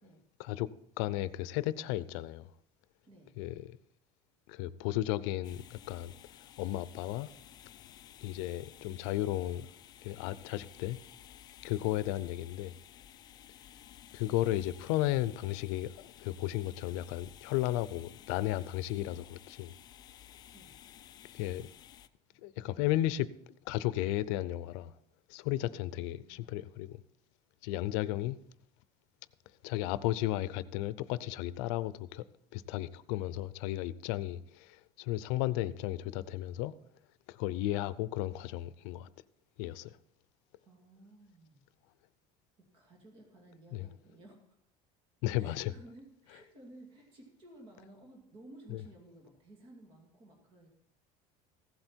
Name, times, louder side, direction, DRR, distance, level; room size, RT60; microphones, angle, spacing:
voice 1, 1.0-2.5 3.4-3.8 4.5-6.1 6.6-7.3 8.2-9.7 10.0-11.0 11.6-12.8 14.1-19.7 21.3-21.7 22.4-23.3 23.6-24.9 25.3-27.0 27.6-28.4 29.6-32.2 32.5-34.4 35.0-36.7 37.3-39.1 39.6-40.0 43.7-43.9 45.2-45.7 48.7-48.8, left 15 dB, 80° left, 0.6 m, -34 dB
sound 1, 5.4-22.1, left 11 dB, 25° left, 0.4 m, -55 dB
voice 2, 22.3-22.6 25.7-26.5 40.6-41.6 42.6-44.6 45.4-50.7, right 1 dB, 35° right, 2.4 m, -56 dB
15.5 x 7.9 x 4.5 m
cardioid pair, 175°, 15 cm